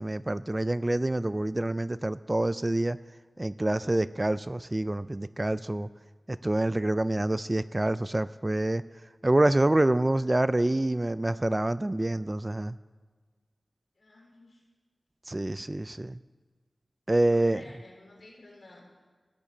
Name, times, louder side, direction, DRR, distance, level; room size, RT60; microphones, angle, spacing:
voice 1, 0.0-3.0 3.4-5.9 6.3-8.8 9.2-12.8 15.3-16.2 17.1-17.6, right 1 dB, 25° right, 15 dB, 0.3 m, -27 dB
voice 2, 13.9-14.6 17.1-18.9, left 2 dB, 70° left, -3 dB, 3.9 m, -52 dB
15.0 x 7.1 x 6.6 m, 1.4 s
wide cardioid pair, 80°, 0 cm